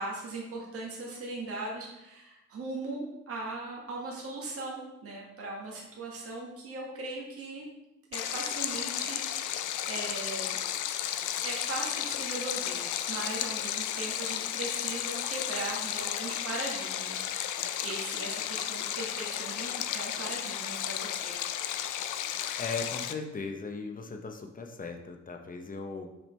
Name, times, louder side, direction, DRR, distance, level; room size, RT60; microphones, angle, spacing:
voice 1, 0.0-7.7 8.1-10.6 11.4-21.3, right 2 dB, 50° right, -3 dB, 1.5 m, -39 dB
Stream, 8.1-23.1, left 11 dB, 80° left, 0.5 m, -33 dB
voice 2, 22.6-26.1, left 4 dB, 30° left, 4 dB, 0.8 m, -38 dB
6.0 x 5.0 x 3.3 m, 0.94 s
cardioid pair, 90°, 30 cm